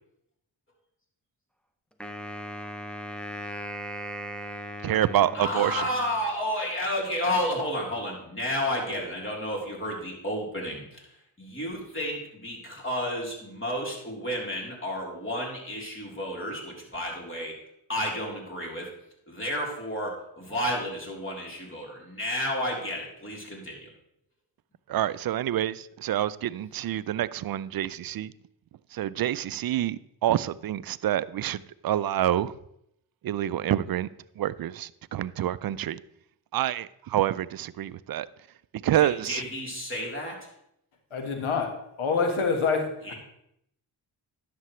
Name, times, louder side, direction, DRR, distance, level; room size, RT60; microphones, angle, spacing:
Wind instrument woodwind instrument, 2.0-6.3, equal, ahead, 0.8 m, -38 dB
voice 1, 4.8-5.8 24.9-28.3 28.9-32.5 33.2-34.1 34.4-36.0 36.5-38.3 38.8-39.4, right 12 dB, 50° right, 0.4 m, -27 dB
voice 2, 5.3-11.1 11.4-17.6 17.9-18.9 19.3-23.9 39.0-40.5 43.0-43.1, equal, 25° left, 3.4 m, -31 dB
voice 3, 41.1-41.7 42.0-42.9, left 5 dB, 75° left, 1.6 m, -25 dB
11.0 x 6.8 x 3.1 m
supercardioid pair, 45°, 49 cm